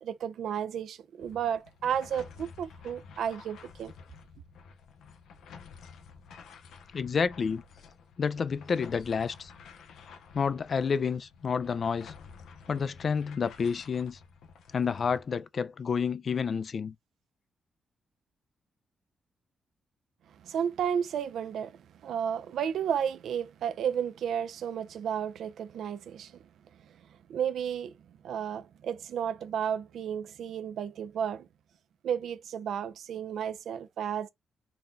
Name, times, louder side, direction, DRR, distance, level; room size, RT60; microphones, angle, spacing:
voice 1, 0.0-3.9 20.4-26.4 27.3-31.5 32.0-34.3, right 8 dB, 80° right, 0.4 m, -33 dB
sound 1, 1.2-15.2, left 5 dB, 85° left, 0.7 m, -51 dB
voice 2, 6.9-7.6 8.2-9.5 10.3-12.1 12.7-14.2 14.7-16.9, left 6 dB, 50° left, 0.3 m, -29 dB
4.0 x 2.2 x 3.7 m
cardioid pair, 85°, 0 cm